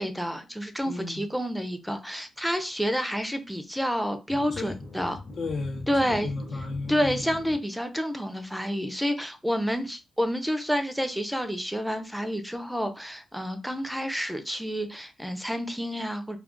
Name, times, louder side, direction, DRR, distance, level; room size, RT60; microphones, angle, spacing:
voice 1, 0.0-5.2 5.9-6.3 6.9-16.4, equal, ahead, 0.5 m, -29 dB
voice 2, 0.8-1.2 4.5-4.8 5.4-7.3, left 3 dB, 70° left, 0.8 m, -34 dB
sound 1, 4.3-7.5, left 2 dB, 25° left, 0.9 m, -41 dB
2.4 x 2.4 x 3.7 m
cardioid pair, 80°, 0 cm